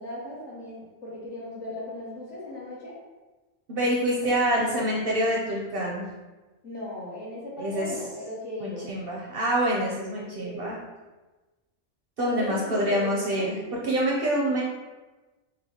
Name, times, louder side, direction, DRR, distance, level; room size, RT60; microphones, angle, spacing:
voice 1, 0.0-2.9 4.7-4.9 6.6-8.9 10.2-10.8 12.2-13.5, left 1 dB, 65° left, -7 dB, 1.5 m, -37 dB
voice 2, 3.7-6.1 7.6-7.9 8.6-10.8 12.2-14.6, right 1 dB, 60° right, -3 dB, 0.6 m, -26 dB
5.1 x 2.0 x 2.8 m, 1.2 s
omnidirectional pair, 1.4 m